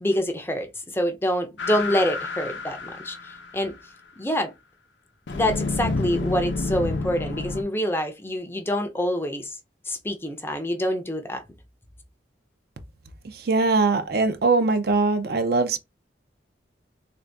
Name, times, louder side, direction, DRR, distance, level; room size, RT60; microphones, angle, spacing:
voice 1, 0.0-3.7 4.2-4.5 5.3-9.6 9.9-11.4, equal, 10° left, 0.5 m, -26 dB
sound 1, 1.6-3.6 5.3-7.6, left 3 dB, 75° left, 0.6 m, -29 dB
voice 2, 13.5-15.8, right 3 dB, 55° right, 0.5 m, -21 dB
3.4 x 2.6 x 3.3 m
head